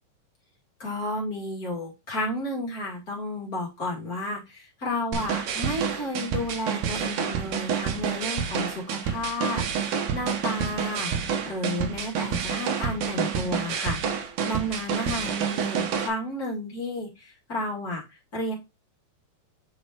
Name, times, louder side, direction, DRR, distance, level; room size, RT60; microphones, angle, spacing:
voice 1, 0.8-11.1 11.4-14.0 14.4-18.0 18.3-18.5, left 1 dB, 30° left, -3 dB, 2.4 m, -32 dB
sound 1, 5.1-16.1, right 7 dB, 75° right, 2.4 m, -28 dB
8.9 x 5.0 x 3.0 m, 0.24 s
omnidirectional pair, 3.8 m